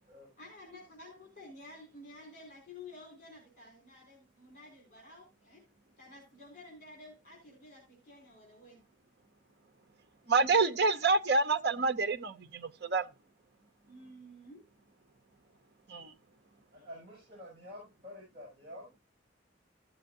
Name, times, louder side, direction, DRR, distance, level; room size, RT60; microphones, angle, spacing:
voice 1, 0.4-5.7 6.0-8.8 10.2-10.4 13.9-14.6 15.4-15.5, left 2 dB, 45° left, 4.7 m, -52 dB
voice 2, 10.3-13.1 15.9-16.1, right 3 dB, 60° right, 0.8 m, -28 dB
voice 3, 16.7-18.9, left 1 dB, 30° right, 6.7 m, -49 dB
16.0 x 7.7 x 2.6 m
head